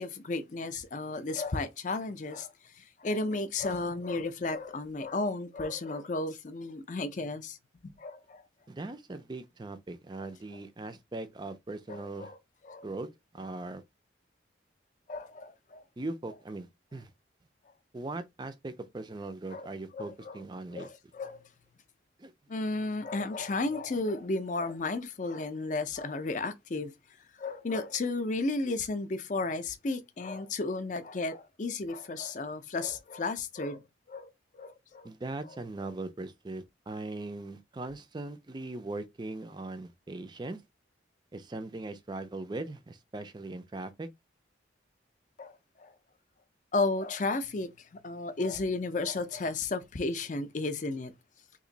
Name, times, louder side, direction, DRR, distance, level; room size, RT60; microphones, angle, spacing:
voice 1, 0.0-7.6 7.8-8.4 10.2-10.3 11.9-12.4 12.7-12.9 15.1-15.8 19.5-19.7 19.9-20.4 20.7-21.4 22.5-26.9 27.4-33.8 34.1-35.1 45.4-45.9 46.7-51.1, left 3 dB, 40° left, 0.5 m, -33 dB
voice 2, 8.7-12.3 12.8-13.1 13.3-13.8 16.0-17.1 17.9-20.9 22.2-22.3 35.0-40.6 41.3-44.1, right 2 dB, 20° right, 0.4 m, -40 dB
3.0 x 2.5 x 3.8 m
head